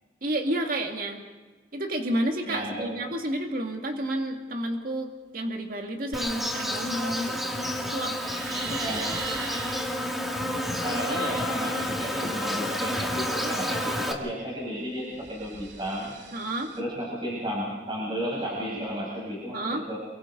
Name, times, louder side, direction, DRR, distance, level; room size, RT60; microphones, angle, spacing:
voice 1, 0.2-1.2 1.7-5.1 5.3-8.1 8.6-9.0 16.3-16.7 19.5-19.8, right 1 dB, 55° right, 2 dB, 2.4 m, -30 dB
voice 2, 2.5-2.9 8.8-9.2 10.8-16.1 16.8-20.0, equal, 30° right, -5 dB, 7.4 m, -33 dB
Insect, 6.1-14.1, left 1 dB, ahead, 2.2 m, -30 dB
sound 1, 8.1-10.0 14.8-16.8, right 5 dB, 70° right, 2.7 m, -39 dB
29.0 x 23.5 x 4.0 m, 1.3 s
head